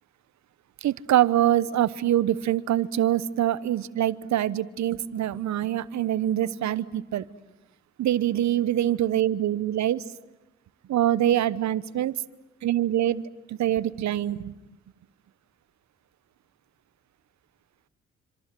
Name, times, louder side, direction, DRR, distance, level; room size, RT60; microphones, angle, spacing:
voice 1, 0.8-7.2 8.0-10.0 10.9-12.1 12.6-13.2 13.5-14.5, right 12 dB, 65° right, 18 dB, 1.1 m, -24 dB
27.0 x 26.0 x 7.7 m, 1.0 s
hypercardioid pair, 50°, 30 cm